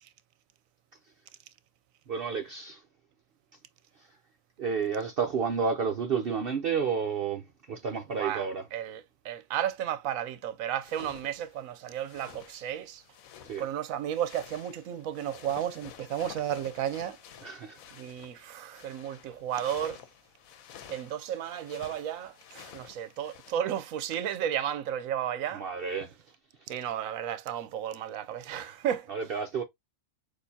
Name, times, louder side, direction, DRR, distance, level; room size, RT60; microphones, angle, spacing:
voice 1, 2.1-2.8 4.0-4.1 4.6-8.7 13.4-13.7 17.4-17.8 25.5-26.2 26.6-26.7 29.1-29.6, right 6 dB, 55° right, 0.7 m, -31 dB
voice 2, 8.7-13.0 13.6-17.2 17.9-20.0 20.9-25.6 26.7-29.1, right 10 dB, 80° right, 1.0 m, -33 dB
sound 1, 10.8-23.5, left 9 dB, 80° left, 1.1 m, -51 dB
6.5 x 2.6 x 2.7 m
omnidirectional pair, 1.5 m